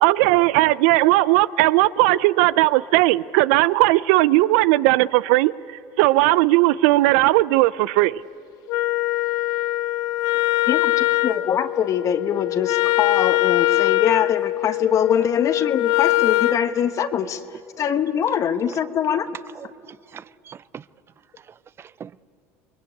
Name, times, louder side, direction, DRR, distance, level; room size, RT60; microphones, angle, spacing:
voice 1, 0.0-5.5 6.0-8.2, right 18 dB, 75° right, 19 dB, 0.6 m, -17 dB
Wind instrument woodwind instrument, 8.7-16.6, left 18 dB, 60° left, 0.7 m, -22 dB
voice 2, 10.7-17.4 17.8-19.3, left 8 dB, 45° left, 9 dB, 1.3 m, -23 dB
voice 3, 19.5-20.8 21.4-22.2, right 8 dB, 35° right, 18 dB, 0.6 m, -43 dB
28.0 x 21.5 x 8.6 m, 2.7 s
supercardioid pair, 95°, 8 cm